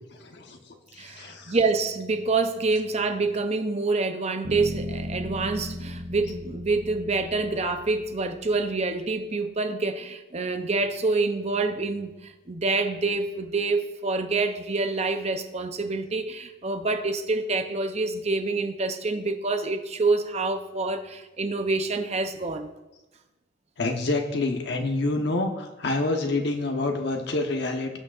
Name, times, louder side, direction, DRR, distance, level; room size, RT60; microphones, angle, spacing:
voice 1, 0.2-0.6 0.9-1.5 23.8-28.0, left 2 dB, 55° left, 4 dB, 1.0 m, -27 dB
voice 2, 1.0-22.7, right 3 dB, 35° right, 7 dB, 0.6 m, -27 dB
sound 1, 4.4-8.5, left 1 dB, 70° right, 1.9 m, -36 dB
17.5 x 6.3 x 2.5 m, 1.0 s
head